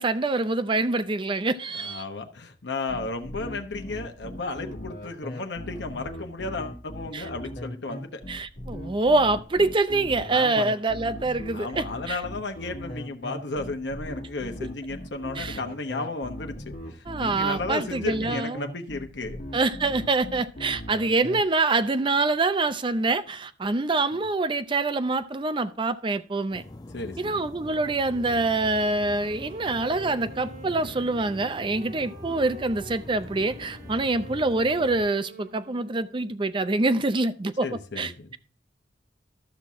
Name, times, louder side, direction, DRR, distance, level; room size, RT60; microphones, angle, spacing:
voice 1, 0.0-2.0 7.1-7.2 8.3-12.2 15.4-15.6 17.1-18.6 19.5-26.6 27.2-37.7 38.0-38.4, right 3 dB, 30° right, 0.5 m, -25 dB
voice 2, 1.7-8.2 10.3-10.6 11.5-16.6 16.9-19.4 26.9-27.5 37.6-38.4, left 3 dB, 80° left, 1.0 m, -34 dB
sound 1, 2.9-21.4, equal, 50° left, 2.0 m, -38 dB
sound 2, 26.5-35.1, left 1 dB, 20° left, 0.5 m, -43 dB
Wind instrument woodwind instrument, 28.9-36.5, right 3 dB, 55° right, 1.4 m, -47 dB
12.5 x 6.0 x 3.5 m
head